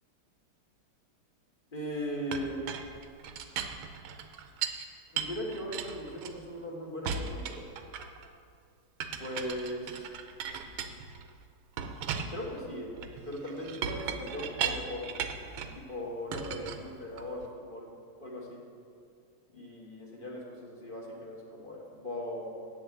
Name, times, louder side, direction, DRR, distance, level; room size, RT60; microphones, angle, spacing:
voice 1, 1.7-2.6 5.1-7.7 9.2-10.1 12.3-13.0 13.2-15.3 15.9-17.9 18.2-18.6 19.5-22.5, equal, 25° left, -2 dB, 1.7 m, -38 dB
Chink clink, 2.3-4.8 5.2-6.6 7.0-8.3 9.0-11.3 11.8-15.8 16.3-17.5, right 7 dB, 85° right, 1.5 m, -37 dB
8.4 x 7.3 x 8.3 m, 2.3 s
omnidirectional pair, 2.2 m